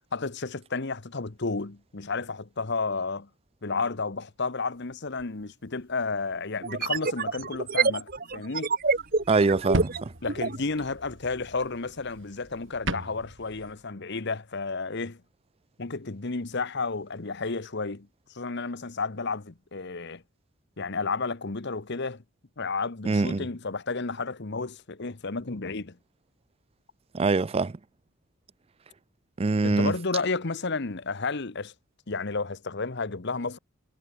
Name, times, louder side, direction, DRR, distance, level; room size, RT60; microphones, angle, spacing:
voice 1, 0.1-3.3 3.6-8.8 10.2-15.2 15.8-20.2 20.8-22.2 22.6-26.0 29.6-31.7 32.1-33.6, left 4 dB, 55° left, 1.1 m, -32 dB
sound 1, 5.2-5.3 6.6-10.6, right 4 dB, 45° right, 1.8 m, -27 dB
sound 2, 8.8-13.7, right 1 dB, 60° right, 5.6 m, -36 dB
voice 2, 9.3-10.1 23.0-23.5 27.1-27.8 29.4-29.9, right 3 dB, 25° right, 0.4 m, -24 dB
head